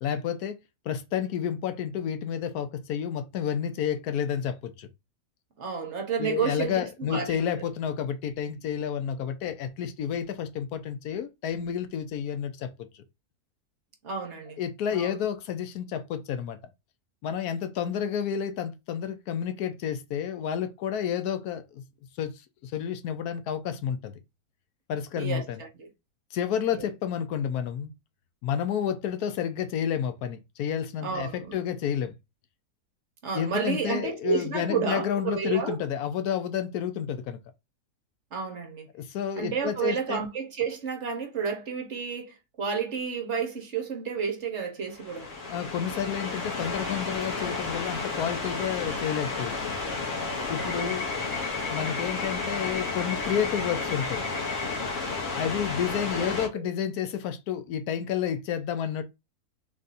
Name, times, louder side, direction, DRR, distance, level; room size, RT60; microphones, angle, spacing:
voice 1, 0.0-0.6 0.8-4.9 6.2-12.9 14.6-16.6 17.2-21.8 22.2-22.3 22.6-24.2 24.9-25.6 26.3-27.9 28.4-32.1 33.3-37.4 38.9-40.2 45.5-49.6 50.5-51.0 51.7-54.2 55.3-59.0, left 8 dB, 85° left, 1.2 m, -30 dB
voice 2, 5.6-7.5 14.0-14.6 14.9-15.1 25.2-25.9 26.7-26.9 31.0-31.6 33.2-35.7 38.3-38.9 39.4-45.3 50.6-51.0 56.2-56.3 56.5-56.7, right 6 dB, 55° right, 1.2 m, -31 dB
sound 1, 44.9-56.5, left 3 dB, 55° left, 1.6 m, -32 dB
3.7 x 2.6 x 4.0 m
omnidirectional pair, 1.6 m